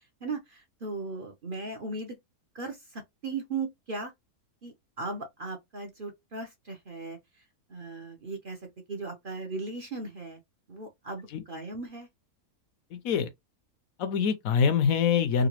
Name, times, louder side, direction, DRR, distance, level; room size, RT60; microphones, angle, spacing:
voice 1, 0.2-2.2 2.5-4.1 4.6-7.2 7.7-8.6 8.9-10.4 10.7-12.1, right 3 dB, 45° right, 0.7 m, -37 dB
voice 2, 12.9-13.3 14.0-15.5, left 6 dB, 70° left, 1.0 m, -24 dB
3.8 x 2.2 x 2.9 m
omnidirectional pair, 1.6 m